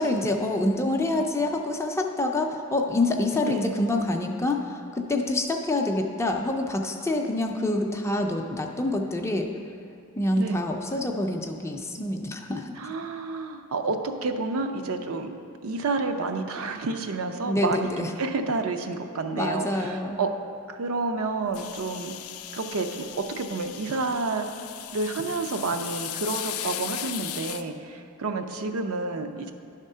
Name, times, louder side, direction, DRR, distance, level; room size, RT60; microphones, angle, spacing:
voice 1, 0.0-9.5 10.2-12.7 17.5-18.1 19.4-20.2, left 2 dB, 10° left, 3 dB, 0.4 m, -26 dB
voice 2, 3.4-3.7 10.4-10.6 12.8-15.4 15.6-20.4 20.7-22.1 22.5-24.5 24.9-29.5, right 3 dB, 70° right, 6 dB, 0.5 m, -29 dB
sound 1, 21.5-27.6, left 12 dB, 75° left, 0.4 m, -37 dB
10.5 x 3.7 x 5.5 m, 2.4 s
head